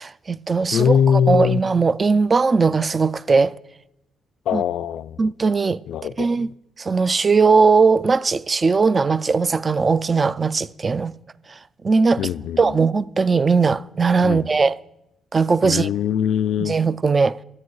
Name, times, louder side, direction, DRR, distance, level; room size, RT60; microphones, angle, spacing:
voice 1, 0.0-3.5 4.5-4.6 5.2-5.8 6.2-6.5 6.8-11.1 11.8-12.3 12.6-14.7 15.3-15.9 16.6-17.4, right 4 dB, 30° right, 0.3 m, -19 dB
voice 2, 0.7-1.6 4.5-5.2 5.9-6.3 12.2-12.8 14.2-14.4 15.6-16.8, left 8 dB, 75° left, 0.3 m, -21 dB
12.0 x 8.5 x 4.7 m
cardioid pair, 90°, 0 cm